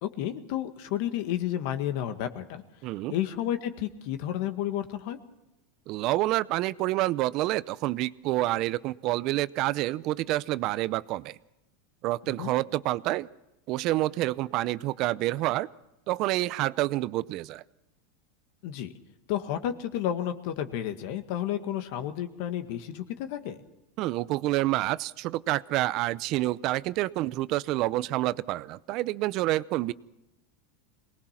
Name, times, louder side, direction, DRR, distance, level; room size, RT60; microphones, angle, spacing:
voice 1, 0.0-2.6 3.1-5.2 12.3-12.5 18.6-18.9 19.3-23.6, left 11 dB, 60° left, 7 dB, 1.8 m, -31 dB
voice 2, 2.8-3.1 5.9-11.4 12.0-13.3 13.7-15.7 16.1-17.6 24.0-29.9, right 17 dB, 50° right, 18 dB, 0.6 m, -28 dB
23.5 x 19.5 x 5.9 m, 0.93 s
supercardioid pair, 130°, 0 cm